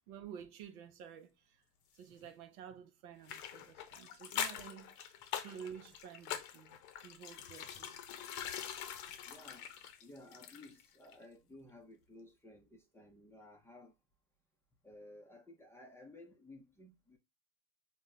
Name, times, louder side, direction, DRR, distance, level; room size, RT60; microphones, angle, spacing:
voice 1, 0.1-1.6 1.9-6.8 7.0-8.0, right 8 dB, 65° right, 0.8 m, -51 dB
sound 1, 3.3-10.9 11.1-11.2, left 9 dB, 55° left, 0.8 m, -43 dB
voice 2, 9.3-9.7 10.0-13.9 14.8-17.2, left 2 dB, 5° left, 0.6 m, -56 dB
4.1 x 2.2 x 3.7 m
hypercardioid pair, 80°, 48 cm